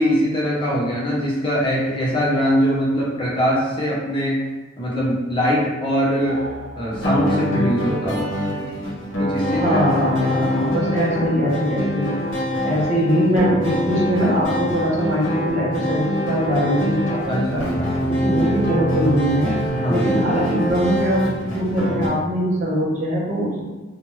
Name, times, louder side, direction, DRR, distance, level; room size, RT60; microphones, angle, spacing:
voice 1, 0.0-4.5 4.8-6.4 6.8-8.3 9.2-9.8 10.2-10.3 11.1-11.5 12.7-12.8 17.3-17.9 19.7-20.2, equal, 25° left, -6 dB, 0.6 m, -22 dB
sound 1, 6.2-7.8, right 1 dB, 80° right, 0.7 m, -38 dB
sound 2, 6.9-22.1, equal, 70° left, 0.8 m, -24 dB
voice 2, 9.5-12.2 12.6-17.6 18.1-19.6 19.9-23.6, equal, 35° right, -5 dB, 0.7 m, -21 dB
2.9 x 2.2 x 2.9 m, 1.2 s
head